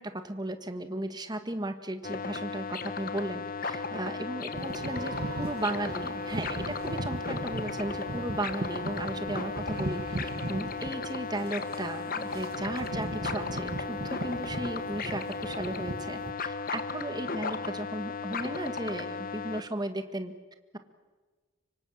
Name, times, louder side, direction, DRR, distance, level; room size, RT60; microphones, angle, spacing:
voice 1, 0.0-20.3, right 1 dB, 20° right, 8 dB, 1.6 m, -36 dB
sound 1, 2.0-19.6, left 4 dB, 40° left, 1.2 m, -36 dB
sound 2, 4.5-16.3, right 2 dB, 45° right, 1.3 m, -38 dB
25.0 x 24.5 x 7.3 m, 1.3 s
head